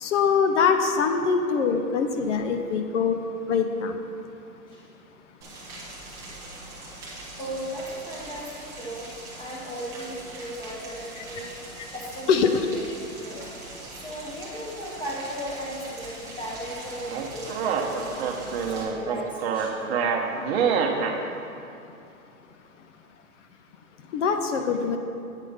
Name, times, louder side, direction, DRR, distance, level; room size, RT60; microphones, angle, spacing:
voice 1, 0.0-3.2 3.5-4.0 12.3-12.5 24.1-25.0, left 6 dB, 55° left, 6 dB, 0.6 m, -23 dB
Rain, 5.4-18.8, right 2 dB, 5° right, 0.4 m, -42 dB
voice 2, 7.4-9.1 9.4-11.5 11.9-13.5 13.9-18.3 18.7-20.0, equal, 10° left, -4 dB, 1.3 m, -36 dB
sound 1, 17.1-21.2, right 6 dB, 45° right, 0.8 m, -26 dB
8.3 x 4.9 x 5.5 m, 2.7 s
hypercardioid pair, 140°, 45 cm